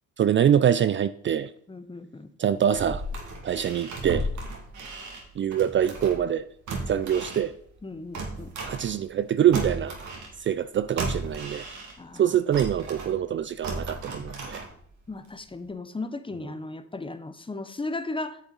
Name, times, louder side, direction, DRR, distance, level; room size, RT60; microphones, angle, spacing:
voice 1, 0.2-1.5 2.4-3.0 3.4-4.3 5.4-6.5 6.9-7.5 8.6-9.9 10.4-11.7 12.1-14.6, right 9 dB, 40° right, 0.4 m, -24 dB
voice 2, 1.7-2.3 7.8-8.5 12.0-12.3 15.1-18.4, left 2 dB, 15° left, 0.8 m, -36 dB
sound 1, 2.5-6.3 6.7-9.3 9.5-12.2 12.5-15.0 15.4-15.5, right 2 dB, 75° right, 2.3 m, -35 dB
9.4 x 7.0 x 4.0 m
cardioid pair, 90°, 30 cm